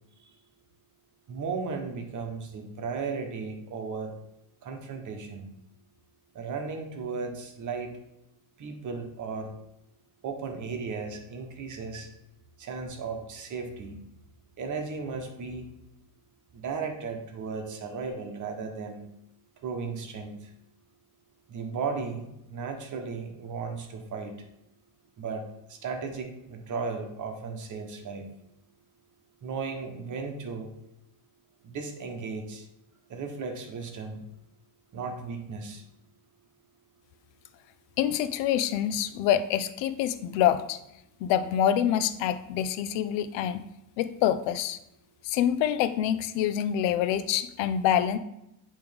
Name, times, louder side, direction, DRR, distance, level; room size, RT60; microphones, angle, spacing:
voice 1, 1.3-4.1 4.6-5.5 6.3-8.0 8.6-9.5 10.2-12.1 12.6-14.0 14.6-15.7 16.5-19.0 19.6-20.5 21.5-24.4 25.2-28.2 29.4-30.7 31.6-32.7 33.1-34.2 34.9-35.8, right 4 dB, 45° right, 4 dB, 1.1 m, -35 dB
voice 2, 38.0-40.8 41.2-43.6 44.0-44.8 45.2-48.2, left 10 dB, 85° left, 12 dB, 0.6 m, -26 dB
8.6 x 3.2 x 3.5 m, 0.84 s
cardioid pair, 125°, 43 cm